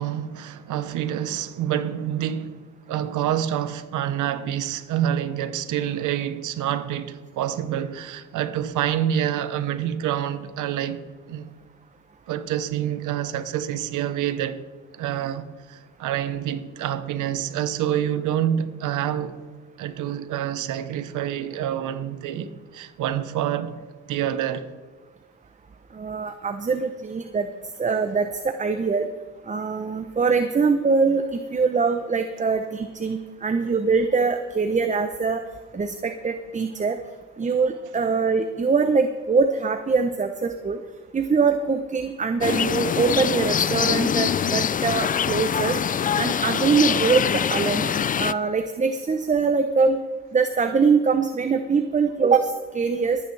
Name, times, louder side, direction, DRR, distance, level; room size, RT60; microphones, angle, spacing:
voice 1, 0.0-2.6 2.9-11.5 12.3-14.6 14.9-19.4 19.8-23.7 24.1-24.7, right 10 dB, 85° right, 1.0 m, -27 dB
voice 2, 25.9-27.5 27.8-29.1 29.5-31.3 31.5-35.4 35.7-37.0 37.4-40.8 41.1-45.8 46.2-47.9 48.2-50.0 50.3-53.2, right 5 dB, 25° right, 0.8 m, -23 dB
sound 1, 42.4-48.3, left 8 dB, 30° left, 0.3 m, -24 dB
23.5 x 9.0 x 3.3 m
cardioid pair, 90°, 30 cm